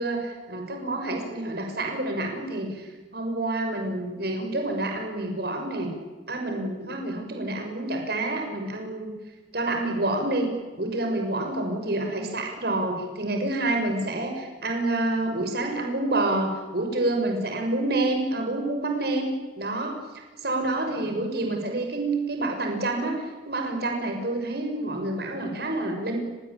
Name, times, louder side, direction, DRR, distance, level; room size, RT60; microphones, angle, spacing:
voice 1, 0.0-5.9 6.3-9.1 9.5-19.3 19.6-20.0 20.4-23.1 23.5-26.2, right 2 dB, 60° right, 4 dB, 6.4 m, -28 dB
29.5 x 22.0 x 8.8 m, 1.2 s
head